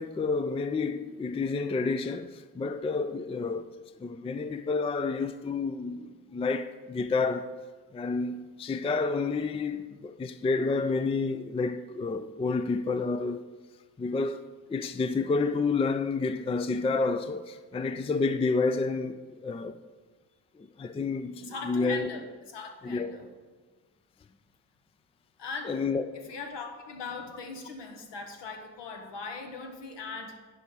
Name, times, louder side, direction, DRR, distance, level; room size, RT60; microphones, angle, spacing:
voice 1, 0.0-3.7 4.0-7.5 7.9-13.4 14.0-19.8 20.6-22.1 22.8-23.1 25.6-26.1, left 4 dB, 15° left, 0.4 m, -29 dB
voice 2, 21.4-23.3 25.4-25.8 26.1-30.4, left 4 dB, 60° left, 1.4 m, -39 dB
10.5 x 4.9 x 5.4 m
hypercardioid pair, 40°, 47 cm